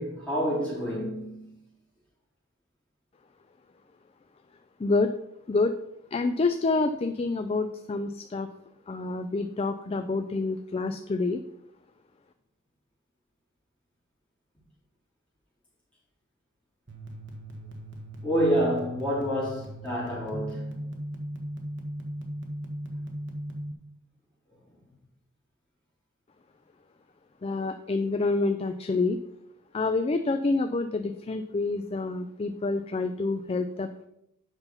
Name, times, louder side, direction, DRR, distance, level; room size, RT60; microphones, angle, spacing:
voice 1, 0.0-1.5 18.2-20.7, equal, 5° left, 3.9 m, -28 dB
voice 2, 6.1-8.5 8.9-11.4 27.4-29.2 29.7-34.1, left 3 dB, 25° left, 0.3 m, -27 dB
sound 1, 16.9-23.7, right 1 dB, 55° right, 1.4 m, -38 dB
8.0 x 5.6 x 5.6 m
head